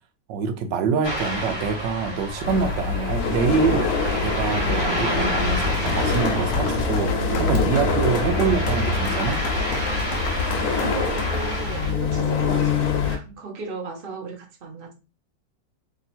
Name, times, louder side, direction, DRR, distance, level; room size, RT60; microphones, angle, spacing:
voice 1, 0.3-3.9 4.2-9.4, right 5 dB, 80° right, 1.3 m, -25 dB
Ocean, 1.0-11.9, equal, 20° left, 0.9 m, -30 dB
sound 1, 2.4-13.2, left 5 dB, 65° left, 1.2 m, -25 dB
sound 2, 5.6-11.4, left 4 dB, 85° left, 0.5 m, -35 dB
voice 2, 10.6-14.9, right 3 dB, 40° right, 0.8 m, -35 dB
3.3 x 2.8 x 4.1 m
omnidirectional pair, 1.9 m